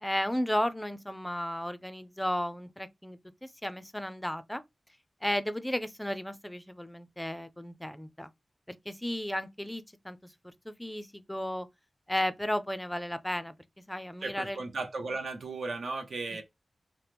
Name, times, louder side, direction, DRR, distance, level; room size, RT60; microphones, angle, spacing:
voice 1, 0.0-4.6 5.2-8.3 8.7-10.2 10.4-11.7 12.1-13.5 13.9-14.6, equal, 10° left, 0.4 m, -34 dB
voice 2, 14.2-16.4, right 3 dB, 75° right, 0.6 m, -35 dB
2.9 x 2.0 x 3.4 m
wide cardioid pair, 70°, 0 cm